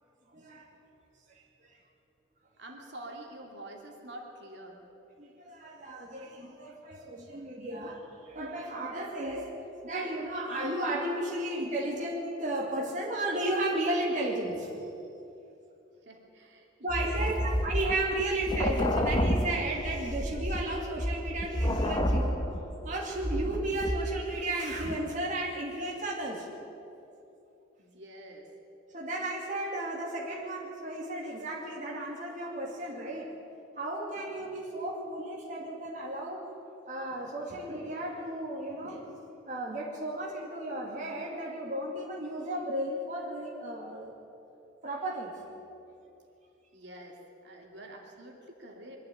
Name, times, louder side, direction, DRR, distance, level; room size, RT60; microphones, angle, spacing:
voice 1, 0.3-0.7 1.3-1.4 1.7-1.8 5.2-9.5 9.8-14.7 16.8-22.4 22.8-26.5 28.9-33.4 33.8-36.5 36.8-39.1 39.5-44.1 44.8-45.4, right 1 dB, 40° right, -3 dB, 2.5 m, -34 dB
voice 2, 2.6-4.8 16.0-17.5 27.8-28.5 46.7-47.2 47.4-49.0, right 1 dB, 60° right, 1 dB, 2.7 m, -47 dB
sound 1, 16.9-24.4 24.8-25.0, equal, 20° left, 1.1 m, -30 dB
23.0 x 11.5 x 9.9 m, 2.8 s
head